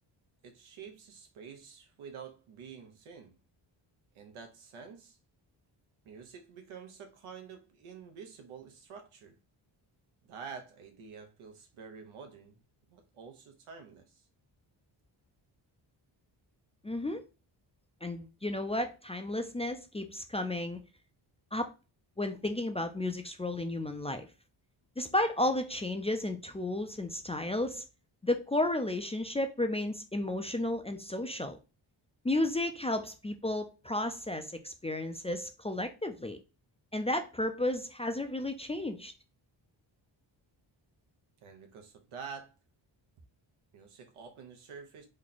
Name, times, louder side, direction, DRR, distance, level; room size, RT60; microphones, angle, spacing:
voice 1, 0.4-3.4 4.1-5.2 6.0-9.4 10.2-12.6 12.9-14.3 41.4-42.6 43.7-45.1, right 6 dB, 85° right, 0.9 m, -48 dB
voice 2, 16.8-17.2 18.0-20.8 21.5-21.7 22.2-24.3 25.0-27.8 28.2-31.6 32.2-36.4 36.9-39.1, left 1 dB, 15° left, 0.4 m, -33 dB
3.1 x 2.2 x 3.9 m
cardioid pair, 75°, 48 cm